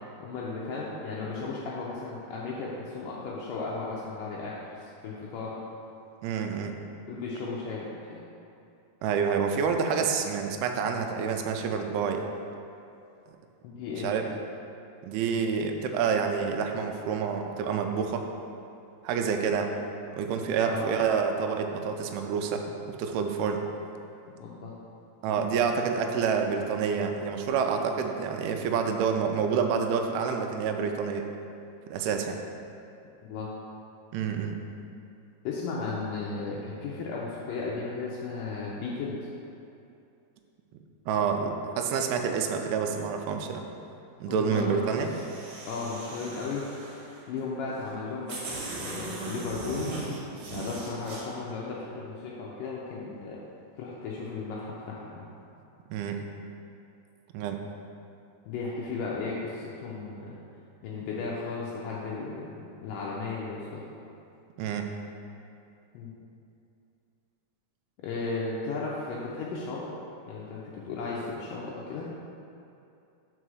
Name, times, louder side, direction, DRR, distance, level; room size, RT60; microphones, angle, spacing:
voice 1, 0.2-5.5 7.1-8.2 13.6-14.1 20.6-20.9 24.4-24.7 25.3-25.4 33.3-33.5 35.4-39.2 44.3-44.9 45.7-46.7 47.3-50.0 50.5-53.4 53.8-55.3 58.5-60.3 60.8-63.8 65.9-66.1 68.0-69.9 70.3-72.1, left 4 dB, 85° left, -5 dB, 1.9 m, -35 dB
voice 2, 6.2-6.8 9.0-12.3 14.0-14.3 15.0-18.3 19.0-19.7 20.1-23.6 25.2-31.3 31.9-32.4 34.1-34.6 41.1-43.6 44.2-45.1 55.9-56.2 57.3-57.6 64.6-64.9, right 6 dB, 85° right, 4 dB, 2.5 m, -28 dB
sound 1, 44.9-47.2 47.9-48.0 48.3-51.2, right 2 dB, 65° right, 2.2 m, -39 dB
5.4 x 4.8 x 6.2 m, 2.7 s
omnidirectional pair, 4.6 m